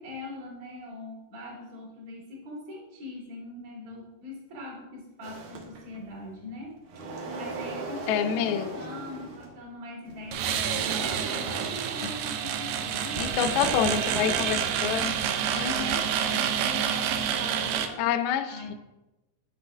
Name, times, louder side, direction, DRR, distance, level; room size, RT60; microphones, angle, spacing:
voice 1, 0.0-7.0 7.4-14.1 15.6-18.1 18.4-18.8, left 1 dB, 55° right, -3 dB, 3.4 m, -42 dB
sound 1, 5.2-6.2 6.6-9.6 10.1-15.6, right 3 dB, 75° right, 2.5 m, -39 dB
voice 2, 8.1-8.7 13.2-15.2 15.5-16.0 18.0-18.7, left 9 dB, 80° left, 8 dB, 1.7 m, -27 dB
sound 2, 10.3-17.9, right 8 dB, 90° right, 2.3 m, -28 dB
9.0 x 7.8 x 2.6 m, 1.0 s
omnidirectional pair, 3.8 m